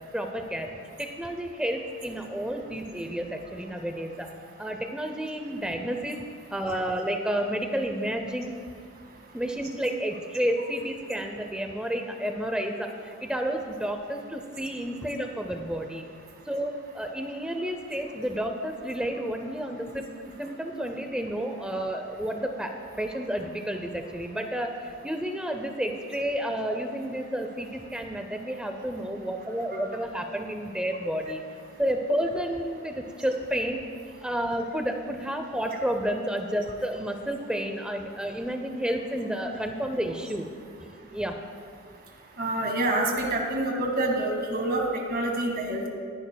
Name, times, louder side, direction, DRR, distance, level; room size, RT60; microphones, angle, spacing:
voice 1, 0.1-4.3 4.6-6.2 6.5-8.5 9.3-16.0 16.5-20.1 20.4-31.4 31.8-33.8 34.2-40.5 41.1-41.4, equal, 5° right, 5 dB, 0.6 m, -31 dB
voice 2, 42.4-45.9, right 2 dB, 45° right, 1 dB, 1.9 m, -27 dB
20.0 x 10.5 x 2.3 m, 2.1 s
head